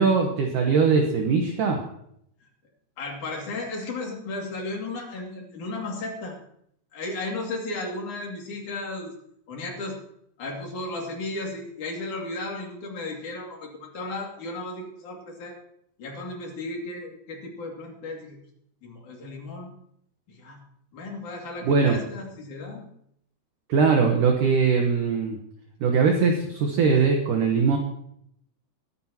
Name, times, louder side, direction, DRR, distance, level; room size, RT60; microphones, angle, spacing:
voice 1, 0.0-1.8 21.6-22.0 23.7-25.4 25.8-27.8, right 5 dB, 65° right, 2 dB, 2.3 m, -21 dB
voice 2, 3.0-6.4 6.9-9.1 9.5-10.0 10.4-15.6 16.0-18.4 18.8-19.7 20.3-20.6 20.9-22.9, left 2 dB, 50° left, -1 dB, 3.7 m, -34 dB
21.5 x 9.8 x 3.0 m, 0.70 s
omnidirectional pair, 4.9 m